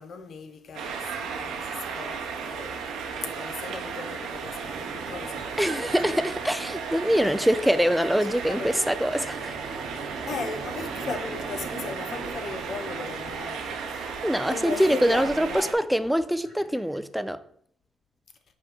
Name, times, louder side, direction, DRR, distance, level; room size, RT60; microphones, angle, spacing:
voice 1, 0.0-6.3 7.2-7.5 8.3-8.8 10.3-14.2 14.4-15.8, left 4 dB, 60° left, 0.8 m, -38 dB
sound 1, 0.7-15.7, right 5 dB, 85° right, 0.8 m, -35 dB
sound 2, 4.6-13.4, right 3 dB, 40° right, 0.9 m, -42 dB
voice 2, 5.6-9.6 14.2-17.4, equal, ahead, 0.4 m, -24 dB
sound 3, 8.5-17.0, left 1 dB, 40° left, 2.5 m, -51 dB
5.2 x 3.6 x 5.5 m
cardioid pair, 90°, 0 cm